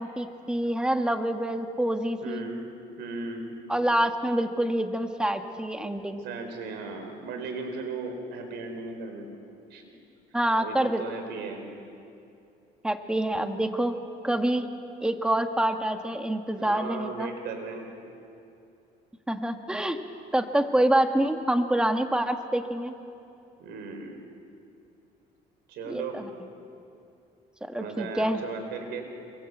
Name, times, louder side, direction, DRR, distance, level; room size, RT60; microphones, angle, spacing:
voice 1, 0.0-2.5 3.7-6.2 10.3-11.0 12.8-14.0 14.2-14.7 15.0-17.3 19.3-20.0 20.3-22.9 25.9-26.2 27.6-28.4, right 1 dB, 5° right, 6 dB, 1.7 m, -26 dB
voice 2, 2.2-2.7 3.0-3.5 6.2-9.2 9.7-9.8 10.6-11.6 16.6-17.9 23.6-24.2 25.7-26.2 27.8-29.1, right 4 dB, 85° right, 5 dB, 4.7 m, -36 dB
27.5 x 23.5 x 8.1 m, 2.6 s
cardioid pair, 110°, 17 cm